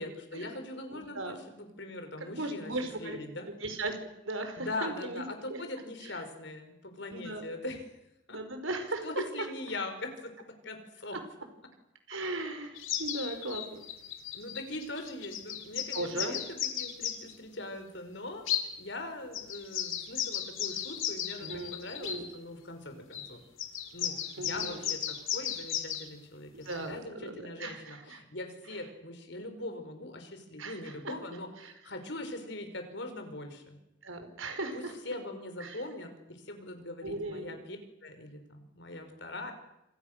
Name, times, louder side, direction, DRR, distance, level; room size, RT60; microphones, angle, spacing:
voice 1, 0.0-3.5 4.6-7.8 8.3-8.4 9.0-11.2 12.1-12.2 13.2-13.4 14.3-18.5 18.8-23.4 23.9-33.8 34.7-39.5, left 2 dB, 60° left, 6 dB, 5.4 m, -41 dB
voice 2, 0.9-1.4 2.2-3.2 3.6-4.0 4.3-5.6 7.1-7.5 8.3-9.1 12.1-13.8 15.9-16.4 21.4-22.3 24.4-24.9 26.5-28.2 30.6-31.1 31.6-31.7 34.0-34.9 35.6-35.8 37.0-37.6, right 2 dB, 85° right, 7 dB, 5.2 m, -37 dB
sound 1, 12.8-17.3 18.5-18.7 19.3-22.2 23.1-23.3 23.6-26.0 26.7-26.8, left 10 dB, 85° left, 3.8 m, -35 dB
28.0 x 26.5 x 6.8 m, 0.88 s
head